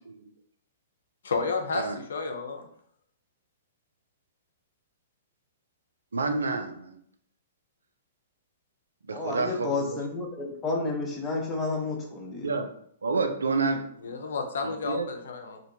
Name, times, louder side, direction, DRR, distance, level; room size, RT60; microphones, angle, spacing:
voice 1, 1.2-2.7 14.0-15.6, left 4 dB, 70° left, 5 dB, 0.4 m, -31 dB
voice 2, 6.1-7.0 9.1-9.9 12.4-12.7 13.0-14.1 14.6-15.1, right 4 dB, 80° right, 7 dB, 0.3 m, -29 dB
voice 3, 9.1-12.5, left 3 dB, 20° left, 0 dB, 0.6 m, -31 dB
2.6 x 2.1 x 2.6 m, 0.64 s
hypercardioid pair, 120°, 0 cm